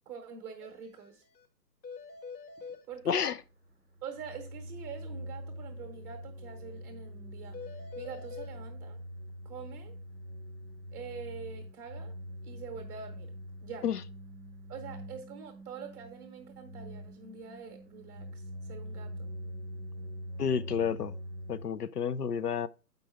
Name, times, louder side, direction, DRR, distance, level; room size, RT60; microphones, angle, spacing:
voice 1, 0.0-1.2 2.9-3.3 4.0-9.0 9.4-9.9 10.9-12.1 12.4-13.3 13.6-13.9 14.7-19.3, right 6 dB, 10° right, 1.0 m, -45 dB
sound 1, 0.6-0.7 1.0-1.1 1.4-1.5 1.8-2.8 7.5-8.5, left 5 dB, 85° left, 1.1 m, -44 dB
sound 2, 2.9-21.7, equal, 10° left, 0.7 m, -44 dB
voice 2, 3.1-3.4 13.8-14.0 20.4-21.1 21.5-22.7, left 7 dB, 65° left, 0.6 m, -30 dB
7.5 x 5.3 x 4.6 m
figure-of-eight pair, 135°, 50 cm